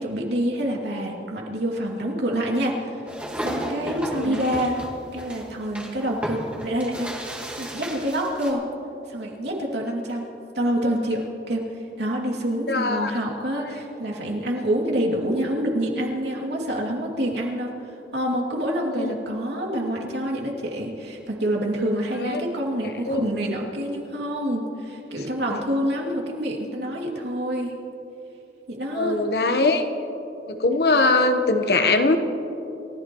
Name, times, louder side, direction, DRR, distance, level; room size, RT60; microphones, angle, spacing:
voice 1, 0.0-3.0 3.4-4.8 5.1-7.1 7.6-8.6 9.1-17.7 18.1-27.7 28.7-29.3, equal, 75° right, -1 dB, 2.7 m, -27 dB
sound 1, 3.1-8.5, equal, 5° right, 1.7 m, -33 dB
voice 2, 4.1-4.4 12.7-13.1 18.9-19.1 22.1-22.4 23.1-23.3 28.9-29.8 30.5-32.2, left 3 dB, 65° left, 6 dB, 1.1 m, -21 dB
29.0 x 15.0 x 3.1 m, 3.0 s
head